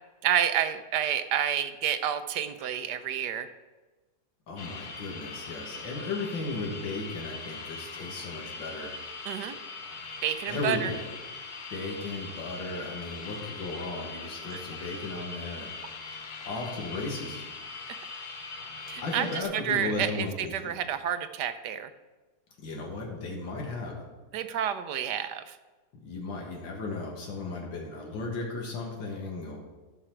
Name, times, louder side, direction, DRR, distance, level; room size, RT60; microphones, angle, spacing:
voice 1, 0.2-3.5 9.3-9.6 10.2-10.9 14.5-14.6 17.9-18.0 18.9-21.9 24.3-25.6, right 9 dB, 75° right, 11 dB, 1.1 m, -29 dB
voice 2, 4.5-8.9 10.5-11.1 11.7-15.7 16.4-17.4 19.0-20.7 22.6-24.0 26.0-29.6, left 3 dB, 90° left, -1 dB, 2.2 m, -35 dB
sound 1, 4.6-19.4, left 4 dB, 60° left, 1.5 m, -41 dB
13.5 x 6.0 x 4.5 m, 1.2 s
omnidirectional pair, 2.0 m